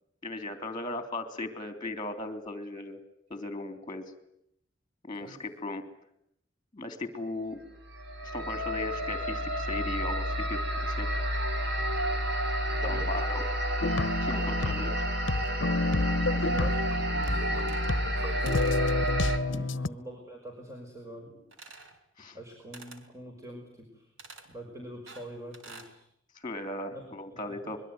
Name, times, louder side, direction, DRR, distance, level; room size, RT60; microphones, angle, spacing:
voice 1, 0.2-3.0 3.3-4.0 5.0-5.9 6.7-7.6 8.2-11.1 12.8-13.4 14.2-14.9 19.5-19.7 22.2-22.4 26.3-27.8, left 2 dB, 25° left, 10 dB, 3.3 m, -37 dB
sound 1, 7.8-19.4, equal, 60° right, 4.7 m, -30 dB
voice 2, 12.7-13.1 16.3-17.7 18.1-18.9 19.5-21.3 22.3-24.1 24.5-26.0 26.9-27.1 27.5-27.8, right 1 dB, 15° right, 1 dB, 5.9 m, -44 dB
sound 2, 13.8-19.9, left 2 dB, 70° left, 1.0 m, -30 dB
sound 3, 17.5-18.2 18.5-18.8 21.5-22.0 22.7-23.1 24.2-24.5 25.1-25.9, right 3 dB, 90° right, 5.1 m, -48 dB
25.0 x 22.5 x 9.5 m, 0.74 s
head